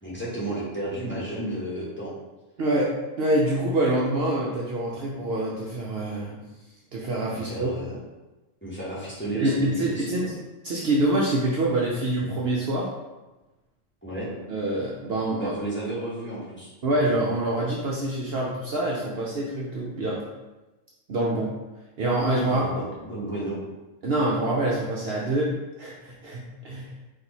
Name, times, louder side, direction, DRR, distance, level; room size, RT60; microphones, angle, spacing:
voice 1, 0.0-2.1 7.4-7.9 8.6-10.1 14.0-14.3 15.4-16.7 22.5-23.6, right 1 dB, 10° left, -8 dB, 1.2 m, -32 dB
voice 2, 2.6-6.4 6.9-7.7 9.3-10.3 10.6-12.9 14.5-15.5 16.8-20.2 21.1-21.5 22.0-22.7 24.0-25.5 25.8-26.9, right 1 dB, 60° right, -4 dB, 0.8 m, -26 dB
4.5 x 2.6 x 4.0 m, 1.1 s
omnidirectional pair, 1.3 m